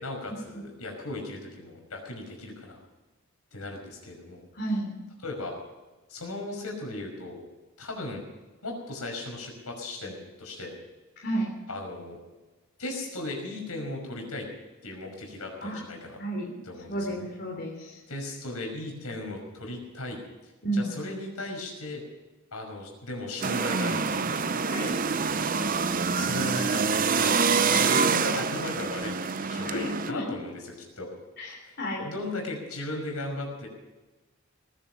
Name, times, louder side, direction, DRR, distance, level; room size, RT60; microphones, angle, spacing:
voice 1, 0.0-2.8 3.5-4.4 5.2-5.5 6.1-7.4 7.8-8.2 8.6-10.7 11.7-12.2 12.8-14.5 14.8-16.2 16.6-17.3 18.1-20.2 20.7-22.0 22.5-24.7 26.1-27.4 27.7-31.1 31.6-31.8 32.0-33.7, left 2 dB, 85° left, 1 dB, 5.8 m, -37 dB
voice 2, 4.5-4.9 11.2-11.5 15.6-15.8 16.2-16.5 16.9-18.0 20.6-20.9 24.6-25.0 29.6-30.2 31.4-32.1, right 1 dB, 45° left, -1 dB, 3.4 m, -31 dB
sound 1, 23.4-30.1, right 5 dB, 40° right, 0.6 m, -26 dB
19.0 x 11.0 x 6.2 m, 1.2 s
head